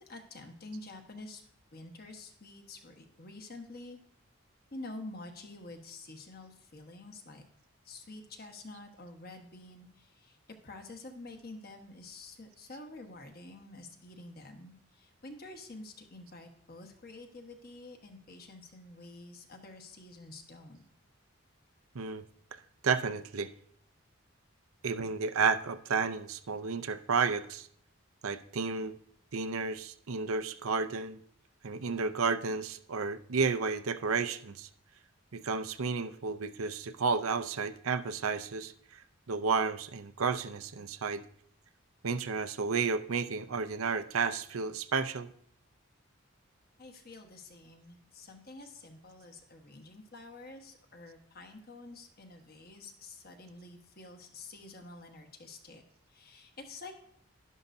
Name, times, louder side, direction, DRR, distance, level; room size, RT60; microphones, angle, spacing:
voice 1, 0.0-4.0 4.7-7.5 7.8-10.4 10.6-20.8 46.8-55.8 56.1-57.0, left 2 dB, 45° left, 4 dB, 1.3 m, -48 dB
voice 2, 22.5-23.5 24.8-27.7 28.2-28.9 29.3-31.2 31.6-34.7 35.3-39.0 39.3-41.2 42.0-45.3, right 5 dB, 85° right, 10 dB, 0.6 m, -32 dB
11.5 x 11.0 x 2.7 m, 0.64 s
head